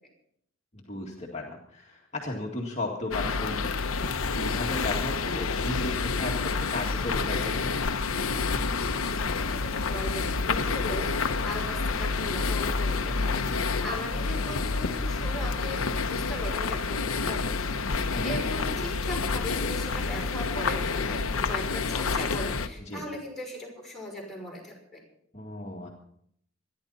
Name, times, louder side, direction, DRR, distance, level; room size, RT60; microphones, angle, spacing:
voice 1, 0.7-3.7 4.2-7.7 18.1-18.4 22.8-23.0 25.3-25.9, left 2 dB, 30° left, -2 dB, 1.9 m, -35 dB
sound 1, 3.1-22.7, left 4 dB, 85° left, 1.0 m, -28 dB
voice 2, 9.0-15.8 16.1-25.0, left 1 dB, ahead, -4 dB, 5.8 m, -39 dB
25.5 x 11.0 x 4.2 m, 0.70 s
head